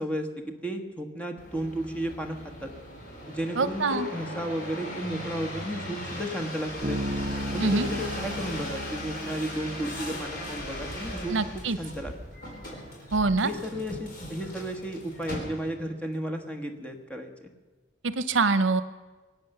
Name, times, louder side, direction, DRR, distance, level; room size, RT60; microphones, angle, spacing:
voice 1, 0.0-2.7 3.3-7.1 7.5-12.1 13.4-17.5, equal, 5° left, 4 dB, 1.4 m, -33 dB
sound 1, 1.4-15.9 16.5-17.0, equal, 50° left, 4.3 m, -38 dB
voice 2, 3.6-4.1 7.6-7.9 11.3-11.8 13.1-13.5 18.0-18.8, right 3 dB, 75° right, 13 dB, 0.7 m, -24 dB
Bass guitar, 6.8-10.5, equal, 45° right, 0.8 m, -35 dB
24.0 x 8.8 x 6.7 m, 1.3 s
head